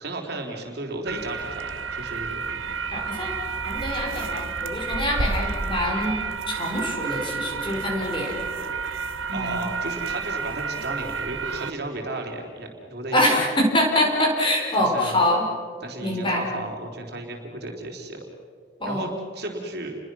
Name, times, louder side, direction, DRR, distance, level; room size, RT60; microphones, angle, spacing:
voice 1, 0.0-2.4 9.3-13.4 14.8-15.2 15.8-18.2 18.9-19.9, right 2 dB, 55° right, 1 dB, 3.6 m, -34 dB
sound 1, 1.1-11.7, right 4 dB, 85° right, 1.1 m, -30 dB
voice 2, 2.9-3.3 3.6-6.2 6.5-8.3 9.3-9.7 13.1-15.4 16.0-16.5 18.8-19.1, left 1 dB, 25° left, 0 dB, 4.8 m, -24 dB
30.0 x 22.5 x 6.2 m, 2.1 s
head